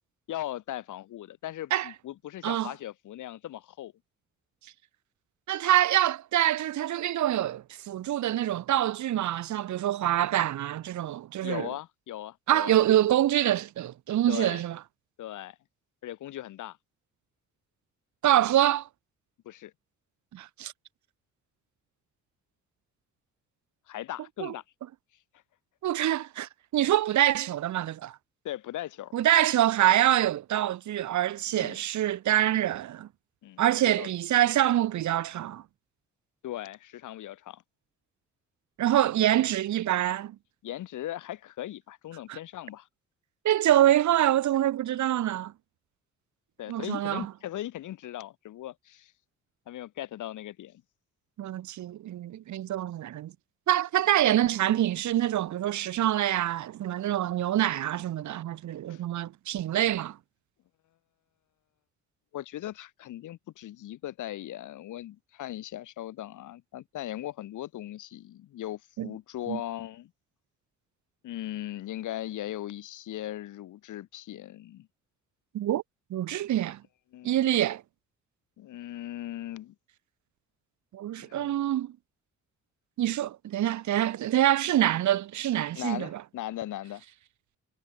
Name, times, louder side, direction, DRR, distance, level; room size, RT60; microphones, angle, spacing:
voice 1, 0.3-3.9 11.4-12.8 14.3-14.6 15.2-15.6 16.0-16.8 19.4-19.7 23.9-24.6 28.4-29.1 31.5-31.8 33.4-34.1 36.4-37.6 40.6-42.9 46.6-49.1 49.7-50.8 58.9-59.0 62.3-70.1 71.2-74.9 77.1-77.5 78.6-79.7 81.2-81.5 85.7-87.0, left 13 dB, 80° left, 6.3 m, -38 dB
voice 2, 5.5-11.7 12.5-14.8 18.2-18.9 20.3-20.7 24.4-24.5 25.8-28.2 29.1-33.1 33.6-35.6 38.8-40.4 42.3-42.4 43.5-45.5 46.7-47.3 51.4-53.3 53.7-60.2 69.0-69.1 69.5-69.6 75.5-75.8 76.1-76.8 77.2-77.8 80.9-81.9 83.0-86.2, right 12 dB, 70° right, 1.7 m, -25 dB
cardioid pair, 90°, 30 cm